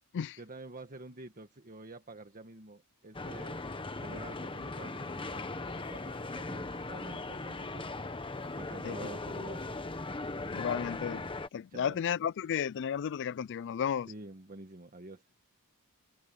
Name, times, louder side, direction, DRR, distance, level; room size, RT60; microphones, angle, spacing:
voice 1, 0.4-7.9 8.6-9.8 11.7-12.0 14.1-15.2, right 2 dB, 40° right, 1.5 m, -48 dB
sound 1, 3.1-11.5, left 3 dB, 25° left, 1.2 m, -39 dB
voice 2, 10.5-11.2 11.5-14.1, left 8 dB, 55° left, 0.3 m, -33 dB
head